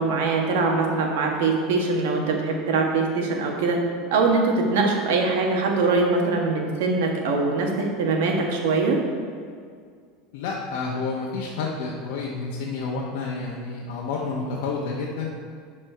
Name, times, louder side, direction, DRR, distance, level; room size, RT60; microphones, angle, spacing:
voice 1, 0.0-3.8 4.1-9.0, right 3 dB, 85° right, 1 dB, 1.4 m, -22 dB
voice 2, 10.3-15.3, left 4 dB, 75° left, -3 dB, 1.0 m, -29 dB
11.5 x 4.3 x 4.5 m, 2.1 s
supercardioid pair, 140°, 0 cm